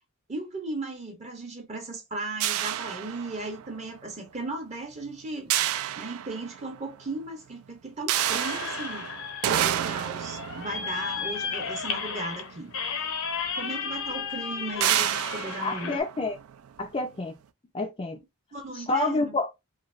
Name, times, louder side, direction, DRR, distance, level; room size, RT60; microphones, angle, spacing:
voice 1, 0.3-5.5 6.0-9.1 9.4-12.7 13.5-16.0 18.5-19.3, right 2 dB, 30° right, 0.6 m, -36 dB
sound 1, 2.4-3.8 5.5-6.8 8.1-12.5 13.5-13.6 13.9-14.1 14.8-16.8, right 11 dB, 75° right, 0.3 m, -30 dB
sound 2, 8.1-16.0, left 6 dB, 70° left, 0.7 m, -34 dB
voice 2, 15.6-16.4 16.8-17.3 17.7-18.2 18.7-19.5, left 2 dB, 25° left, 0.3 m, -28 dB
3.1 x 2.7 x 2.4 m
head